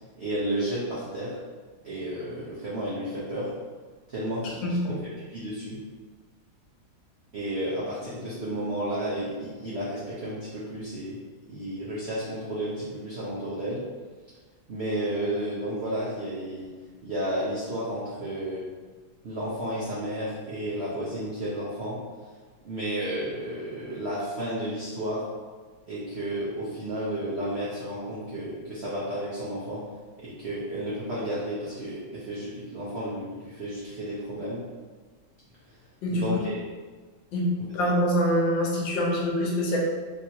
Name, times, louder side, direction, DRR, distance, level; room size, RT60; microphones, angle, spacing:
voice 1, 0.2-1.4 1.8-3.5 4.1-4.8 5.3-5.8 7.3-11.2 11.5-13.8 14.7-16.7 17.0-18.6 19.2-22.3 22.6-25.2 25.9-29.8 30.2-34.6 35.7-35.8 36.1-36.6, right 1 dB, 85° right, -8 dB, 0.5 m, -32 dB
voice 2, 4.6-5.0 36.0-36.3 37.3-39.8, equal, 80° left, -2 dB, 1.4 m, -25 dB
3.3 x 2.9 x 2.7 m, 1.4 s
omnidirectional pair, 2.1 m